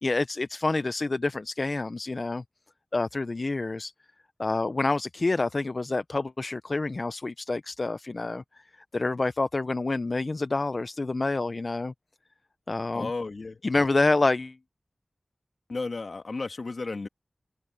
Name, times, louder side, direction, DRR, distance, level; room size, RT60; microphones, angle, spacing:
voice 1, 0.0-2.4 2.9-3.9 4.4-8.4 8.9-11.9 12.7-13.1 13.6-14.6, left 3 dB, 60° left, 0.5 m, -27 dB
voice 2, 12.9-13.6 15.7-17.1, left 3 dB, 75° left, 2.0 m, -33 dB
cardioid pair, 40°, 0 cm